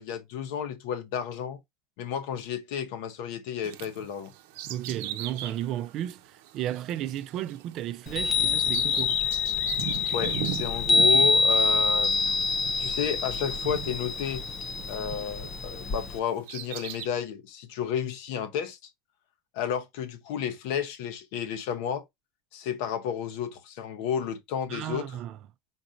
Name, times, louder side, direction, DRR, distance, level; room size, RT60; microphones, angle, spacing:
voice 1, 0.0-1.6 2.0-4.3 10.1-12.5 12.8-14.4 14.9-18.9 19.5-22.0 22.5-25.1, left 8 dB, 70° left, 0.9 m, -32 dB
Bird vocalization bird call bird song, 3.6-15.7 16.2-17.1, right 12 dB, 80° right, 0.7 m, -39 dB
voice 2, 4.7-9.2 24.7-25.4, right 12 dB, 45° right, 0.4 m, -34 dB
Chime, 8.1-16.2, left 4 dB, 20° left, 0.5 m, -26 dB
5.0 x 4.0 x 2.5 m
cardioid pair, 155°, 0 cm